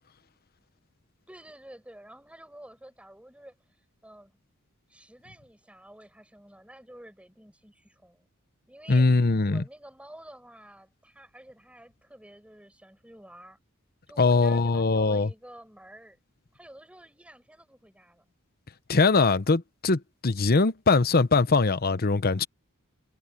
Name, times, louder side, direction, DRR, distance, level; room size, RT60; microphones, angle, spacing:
voice 1, 1.3-3.6 4.0-4.3 4.9-8.3 8.7-13.6 14.1-16.2 16.5-18.3, right 1 dB, 5° right, 5.9 m, -50 dB
voice 2, 8.9-9.6 14.2-15.3 18.9-22.4, left 3 dB, 45° left, 0.9 m, -22 dB
head